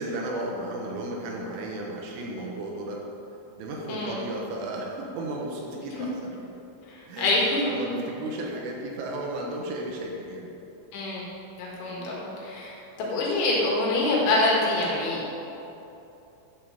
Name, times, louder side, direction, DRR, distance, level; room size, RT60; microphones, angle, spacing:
voice 1, 0.0-3.0 3.6-6.3 7.1-7.4 7.6-10.5, right 1 dB, 80° right, -1 dB, 3.7 m, -34 dB
voice 2, 6.9-8.0 10.9-11.2 11.6-15.2, left 2 dB, 65° left, -4 dB, 4.0 m, -26 dB
12.5 x 5.7 x 6.9 m, 2.9 s
omnidirectional pair, 6.0 m